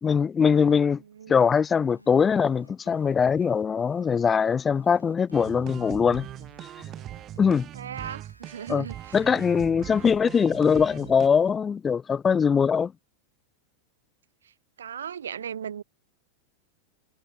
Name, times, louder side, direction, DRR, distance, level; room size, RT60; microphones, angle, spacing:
voice 1, 0.0-1.0 1.3-6.3 7.4-7.7 8.7-8.9 9.1-12.9, left 6 dB, 20° left, 0.4 m, -22 dB
voice 2, 1.1-1.4 7.7-9.2 14.8-15.8, right 8 dB, 65° right, 1.7 m, -37 dB
sound 1, 1.5-11.6, equal, 90° right, 6.7 m, -57 dB
sound 2, 5.3-11.3, right 11 dB, 30° right, 3.7 m, -40 dB
figure-of-eight pair, 90°, 0 cm